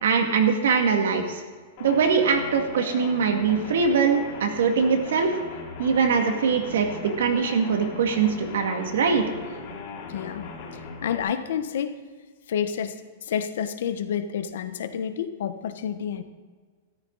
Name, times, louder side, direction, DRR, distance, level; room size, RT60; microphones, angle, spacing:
voice 1, 0.0-1.4 1.8-5.3 5.8-9.2, right 5 dB, 75° right, 4 dB, 2.2 m, -22 dB
sound 1, 1.8-11.2, left 4 dB, 35° left, 2.7 m, -39 dB
voice 2, 10.0-10.5 11.0-12.0 12.5-16.2, left 8 dB, 65° left, 10 dB, 1.1 m, -29 dB
13.5 x 13.0 x 4.1 m, 1.5 s
supercardioid pair, 180°, 0 cm